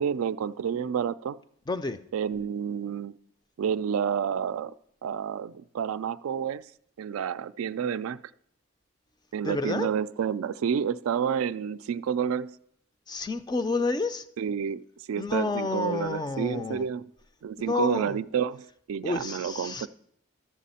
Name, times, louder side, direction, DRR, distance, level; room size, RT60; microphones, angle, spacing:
voice 1, 0.0-1.4 2.1-3.2 3.6-4.7 5.0-6.7 7.0-8.2 9.3-12.6 14.4-14.8 15.1-17.1 17.4-19.9, right 7 dB, 85° right, 0.3 m, -29 dB
voice 2, 1.7-2.0 9.4-9.9 13.1-14.3 15.2-16.9 17.7-18.2 19.0-19.9, left 3 dB, 20° left, 0.3 m, -29 dB
12.0 x 7.4 x 4.2 m
head